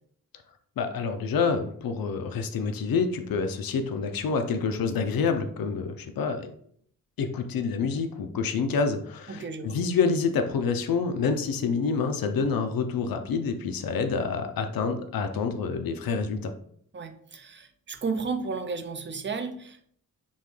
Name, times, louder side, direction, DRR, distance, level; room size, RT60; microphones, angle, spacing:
voice 1, 0.8-6.5 7.2-16.5, left 5 dB, 75° left, 7 dB, 0.5 m, -27 dB
voice 2, 9.3-9.8 16.9-19.9, right 4 dB, 35° right, 8 dB, 0.5 m, -33 dB
5.4 x 2.2 x 3.1 m, 0.63 s
wide cardioid pair, 105°, 35 cm